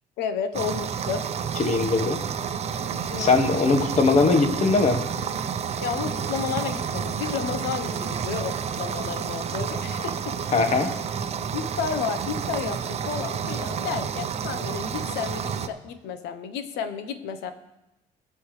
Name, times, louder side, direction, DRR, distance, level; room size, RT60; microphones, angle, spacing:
voice 1, 0.2-1.2 3.1-3.4 5.8-10.4 10.7-10.9 11.5-17.5, left 7 dB, 90° left, 10 dB, 1.0 m, -32 dB
sound 1, 0.5-15.7, right 7 dB, 40° right, 0.7 m, -30 dB
voice 2, 1.6-2.2 3.2-5.0 10.5-10.9, left 4 dB, 40° left, 7 dB, 1.4 m, -20 dB
20.0 x 6.9 x 3.3 m, 0.94 s
cardioid pair, 110°, 17 cm